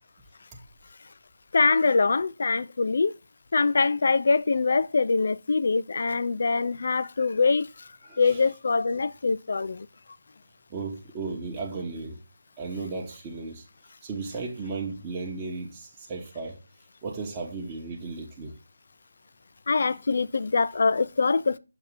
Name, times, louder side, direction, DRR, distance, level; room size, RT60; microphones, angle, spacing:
voice 1, 1.5-3.1 3.5-7.7 8.2-9.9 19.7-21.6, left 4 dB, 55° left, 0.4 m, -23 dB
voice 2, 8.1-8.4 10.7-12.2 12.6-13.6 14.0-16.6 17.0-18.5, right 4 dB, 15° right, 0.9 m, -35 dB
6.8 x 2.8 x 5.8 m
figure-of-eight pair, 165°, 0 cm